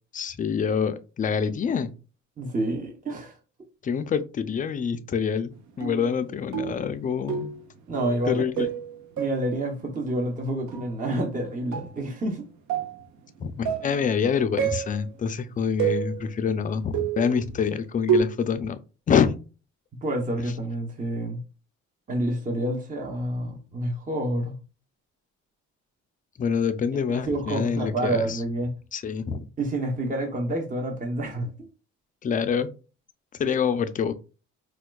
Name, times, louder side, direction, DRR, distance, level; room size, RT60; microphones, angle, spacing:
voice 1, 0.1-1.9 3.8-7.5 8.3-8.7 13.4-18.8 19.1-19.4 26.4-28.4 28.9-29.4 32.2-32.7 33.3-34.1, left 6 dB, 30° left, 0.4 m, -26 dB
voice 2, 2.4-3.3 7.9-8.7 9.2-12.4 20.0-21.4 22.1-24.6 27.1-28.8 29.6-31.5, right 1 dB, 25° right, 0.8 m, -28 dB
sound 1, 5.8-6.2 6.5-6.9 7.3-7.7 7.9-8.3 8.6-9.6 10.7-10.8 11.7-11.9 12.7-13.0 13.7-14.0 14.6-15.1 15.8-16.4 16.9-17.4 18.1-18.2, right 8 dB, 70° right, 0.6 m, -28 dB
4.4 x 2.3 x 2.2 m
cardioid pair, 90°, 30 cm